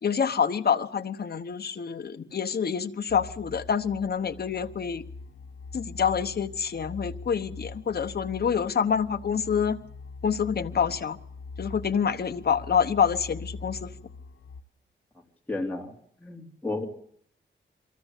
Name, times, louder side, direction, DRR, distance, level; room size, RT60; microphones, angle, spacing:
voice 1, 0.0-5.0 5.7-9.8 10.2-11.2 11.6-13.9, left 7 dB, 50° left, 10 dB, 1.1 m, -27 dB
sound 1, 3.1-14.6, left 3 dB, 70° left, 1.3 m, -42 dB
voice 2, 15.5-15.9 16.2-16.9, left 2 dB, 10° left, -1 dB, 3.5 m, -32 dB
23.0 x 14.5 x 8.2 m, 0.67 s
wide cardioid pair, 120°, 20 cm